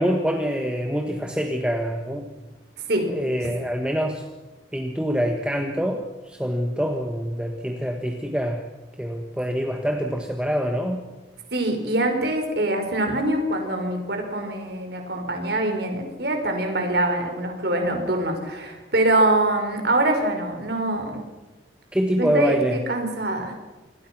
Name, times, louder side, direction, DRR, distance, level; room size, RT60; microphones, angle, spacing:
voice 1, 0.0-2.3 3.1-4.2 4.7-8.7 9.0-11.0 21.9-22.8, equal, 5° right, 4 dB, 1.4 m, -25 dB
voice 2, 11.5-21.2 22.2-23.5, right 1 dB, 55° right, 4 dB, 5.1 m, -24 dB
27.5 x 21.0 x 6.1 m, 1.2 s
head